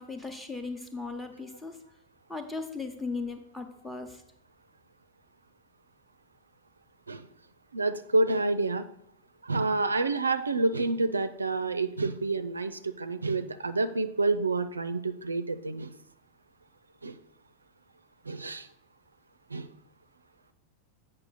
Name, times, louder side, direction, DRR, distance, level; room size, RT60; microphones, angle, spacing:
voice 1, 0.0-1.8 2.3-4.2, left 3 dB, 5° left, 6 dB, 0.9 m, -37 dB
voice 2, 7.7-8.8 9.4-15.9 17.0-17.2 18.3-18.7 19.5-19.7, right 3 dB, 80° right, 10 dB, 0.4 m, -28 dB
8.2 x 5.4 x 4.0 m, 0.75 s
figure-of-eight pair, 90°, 0 cm